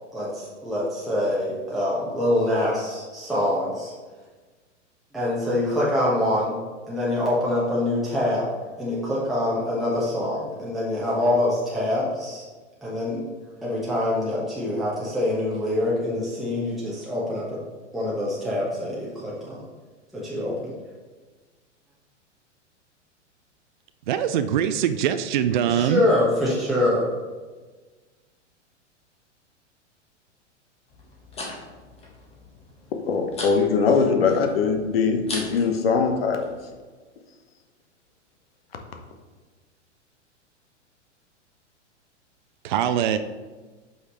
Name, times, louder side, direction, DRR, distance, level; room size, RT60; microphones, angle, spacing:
voice 1, 0.1-3.9 5.1-6.5 6.9-8.5 8.8-12.4 12.8-13.2 13.6-17.6 17.9-19.7 20.1-20.7 25.7-27.1, left 1 dB, ahead, -8 dB, 1.3 m, -25 dB
voice 2, 24.1-26.0 42.6-43.2, right 9 dB, 40° right, 10 dB, 0.4 m, -23 dB
sound 1, 30.9-36.7, left 2 dB, 15° left, 1.6 m, -40 dB
voice 3, 33.1-36.5, left 5 dB, 50° left, 4 dB, 1.1 m, -21 dB
8.0 x 5.7 x 3.1 m, 1.3 s
figure-of-eight pair, 100°, 37 cm